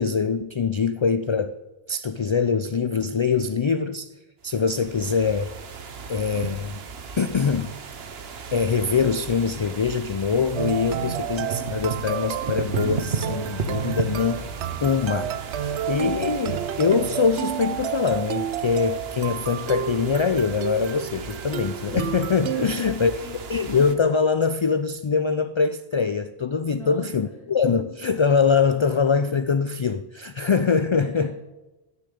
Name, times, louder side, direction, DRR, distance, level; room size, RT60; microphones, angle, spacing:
voice 1, 0.0-1.6 1.9-4.1 4.4-5.5 6.1-6.8 7.2-7.7 8.5-14.5 14.8-23.1 23.5-31.3, left 5 dB, 50° left, 11 dB, 0.3 m, -23 dB
sound 1, 4.4-23.9, right 5 dB, 65° right, 1.2 m, -35 dB
sound 2, 10.6-22.7, right 10 dB, 85° right, 0.9 m, -31 dB
voice 2, 22.5-23.5 26.7-27.5 31.0-31.3, right 1 dB, 35° right, -1 dB, 3.5 m, -42 dB
10.0 x 9.7 x 8.4 m, 1.1 s
omnidirectional pair, 1.1 m